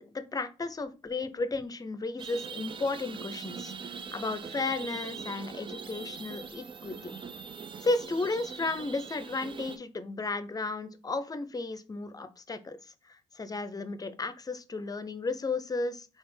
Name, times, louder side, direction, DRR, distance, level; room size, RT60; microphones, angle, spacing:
voice 1, 0.0-7.1 7.8-16.2, left 3 dB, 25° left, 12 dB, 0.6 m, -34 dB
sound 1, 2.2-9.8, right 6 dB, 35° right, 0.4 m, -42 dB
4.1 x 2.4 x 3.2 m, 0.32 s
supercardioid pair, 55°, 15 cm